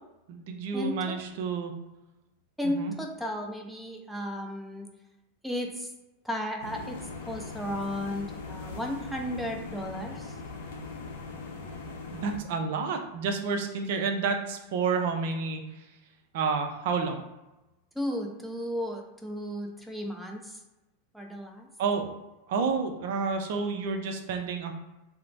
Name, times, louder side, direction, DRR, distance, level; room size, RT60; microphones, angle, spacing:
voice 1, 0.3-1.7 2.6-2.9 12.1-15.6 16.3-17.2 21.8-22.1 22.5-24.7, right 5 dB, 60° right, 4 dB, 0.5 m, -29 dB
voice 2, 2.6-4.9 5.4-5.9 6.2-7.0 7.3-10.3 17.9-20.6 21.1-21.7, left 1 dB, ahead, 1 dB, 0.5 m, -34 dB
sound 1, 6.6-12.4, left 3 dB, 65° left, 0.6 m, -40 dB
3.0 x 2.0 x 2.5 m, 0.99 s
hypercardioid pair, 90°, 0 cm